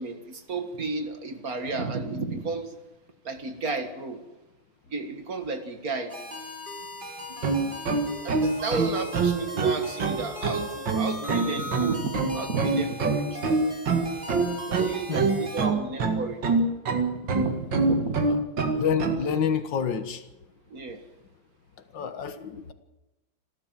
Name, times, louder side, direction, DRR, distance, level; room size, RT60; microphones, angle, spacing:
voice 1, 0.0-2.7 3.3-4.2 4.9-6.1 8.2-13.4 14.7-16.4 17.0-18.3 20.7-21.0, right 3 dB, 45° right, 7 dB, 2.1 m, -32 dB
sound 1, 6.1-15.7, left 1 dB, 25° right, 3.7 m, -39 dB
sound 2, 7.3-19.2, right 4 dB, 70° right, 2.5 m, -25 dB
voice 2, 18.8-20.2 21.9-22.7, left 7 dB, 65° left, 9 dB, 2.0 m, -28 dB
27.5 x 13.0 x 7.6 m, 1.0 s
omnidirectional pair, 2.2 m